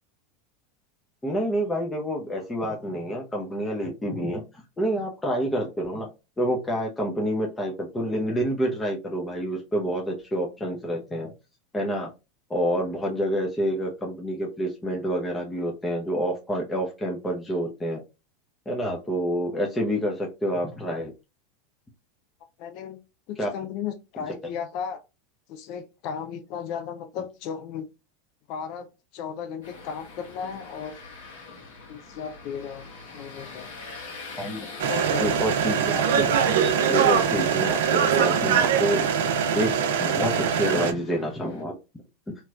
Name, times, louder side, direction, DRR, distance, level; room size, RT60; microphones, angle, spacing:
voice 1, 1.2-4.4 4.8-6.1 6.4-11.3 11.7-12.1 12.5-18.0 18.7-21.1 23.4-23.5 34.4-34.7 35.2-39.0 39.5-39.7 40.0-41.7, equal, 15° left, 0.8 m, -28 dB
voice 2, 22.6-23.0 23.3-25.0 25.5-27.9 28.5-31.0 31.9-32.8 33.1-33.7 34.9-35.4, left 7 dB, 55° left, 0.4 m, -35 dB
sound 1, 29.6-41.6, left 4 dB, 70° left, 1.3 m, -43 dB
sound 2, 34.8-40.9, right 7 dB, 70° right, 0.5 m, -22 dB
3.0 x 3.0 x 2.3 m
hypercardioid pair, 90°, 0 cm